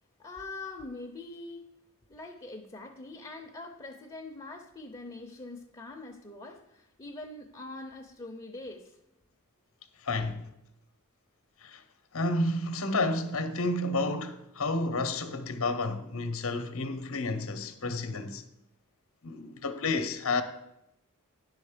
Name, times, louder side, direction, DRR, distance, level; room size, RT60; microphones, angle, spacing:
voice 1, 0.2-1.7 2.1-9.0 10.1-10.3, left 2 dB, 20° left, 0.7 m, -43 dB
voice 2, 10.0-10.4 11.6-11.8 12.1-18.4 19.2-20.4, left 2 dB, 65° left, 0.9 m, -30 dB
10.0 x 6.4 x 5.1 m
head